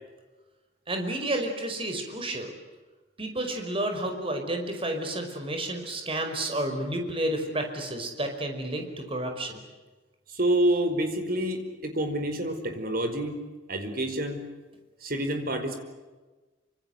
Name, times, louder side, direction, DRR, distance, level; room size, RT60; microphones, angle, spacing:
voice 1, 0.9-2.5 3.2-9.6, right 1 dB, 30° right, 4 dB, 5.4 m, -31 dB
voice 2, 10.3-13.4 13.7-14.4 15.0-15.8, right 1 dB, 55° right, 7 dB, 5.0 m, -27 dB
27.5 x 26.5 x 8.1 m, 1.2 s
head